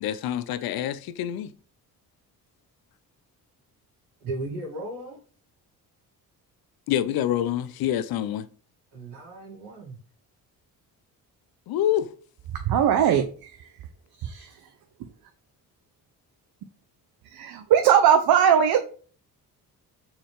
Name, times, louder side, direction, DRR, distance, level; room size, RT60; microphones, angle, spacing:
voice 1, 0.0-1.5 6.9-8.5 11.7-12.1, left 11 dB, 65° left, 0.6 m, -26 dB
voice 2, 4.2-5.2 8.9-10.0, right 2 dB, 85° right, 1.9 m, -36 dB
voice 3, 12.7-13.5 14.2-14.5 17.3-18.8, right 9 dB, 65° right, 0.7 m, -20 dB
4.3 x 3.9 x 3.2 m
supercardioid pair, 60°, 39 cm